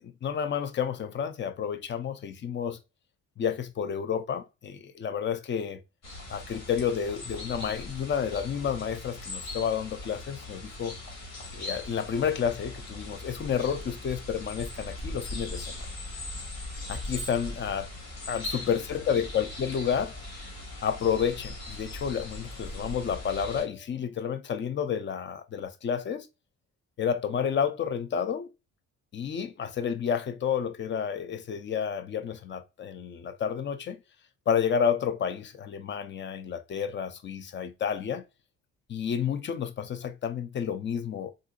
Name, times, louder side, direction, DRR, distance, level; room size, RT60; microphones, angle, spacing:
voice 1, 0.0-2.8 3.4-5.8 6.3-10.9 11.5-15.8 16.9-17.9 18.3-20.2 20.8-26.3 27.0-28.5 29.1-34.0 34.5-38.2 38.9-41.3, left 7 dB, 40° left, 0.5 m, -30 dB
sound 1, 6.0-23.6, left 2 dB, 65° left, 2.0 m, -40 dB
3.8 x 2.6 x 2.4 m
cardioid pair, 90°, 30 cm